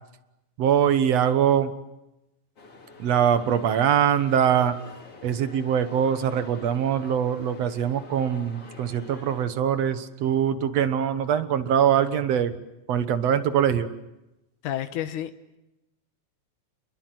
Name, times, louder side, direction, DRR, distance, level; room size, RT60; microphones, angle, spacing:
voice 1, 0.6-1.7 3.0-4.8 5.2-12.6 12.9-13.9, right 9 dB, 60° right, 12 dB, 2.2 m, -23 dB
sound 1, 2.6-9.5, left 3 dB, 50° left, 4.2 m, -47 dB
voice 2, 14.6-15.6, left 11 dB, 85° left, 10 dB, 2.6 m, -31 dB
29.5 x 22.0 x 7.8 m, 0.93 s
omnidirectional pair, 3.5 m